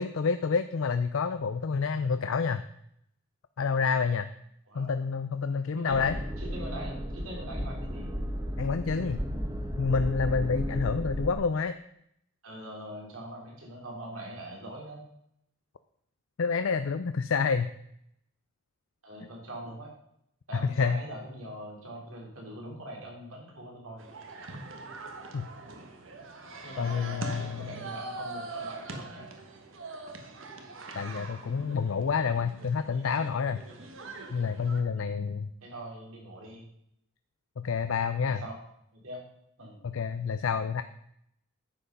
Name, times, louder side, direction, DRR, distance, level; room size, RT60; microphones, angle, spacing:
voice 1, 0.0-2.6 3.6-4.3 4.7-6.2 8.6-9.2 9.8-11.8 16.4-17.7 20.8-21.0 25.3-25.5 26.8-27.7 30.9-33.6 34.3-35.5 37.6-38.4 39.8-40.8, left 5 dB, 75° left, 10 dB, 0.5 m, -28 dB
sound 1, 5.9-11.3, equal, 15° right, 1.2 m, -34 dB
voice 2, 6.4-8.1 12.4-15.0 19.0-19.9 20.5-24.1 26.6-29.3 35.0-35.3 35.6-36.7 38.3-38.6 38.9-39.2 39.6-39.8, right 1 dB, 85° right, -2 dB, 4.0 m, -42 dB
sound 2, 24.0-34.8, right 3 dB, 70° right, 1.4 m, -43 dB
10.0 x 8.0 x 5.4 m, 0.73 s
head